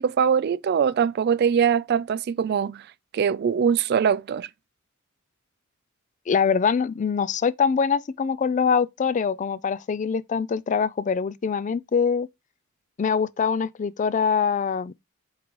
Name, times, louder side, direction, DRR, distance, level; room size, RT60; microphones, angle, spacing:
voice 1, 0.0-2.9 3.1-4.5, right 7 dB, 50° right, 0.3 m, -22 dB
voice 2, 6.3-12.3 13.0-14.9, left 6 dB, 35° left, 0.3 m, -24 dB
8.0 x 3.8 x 3.1 m
head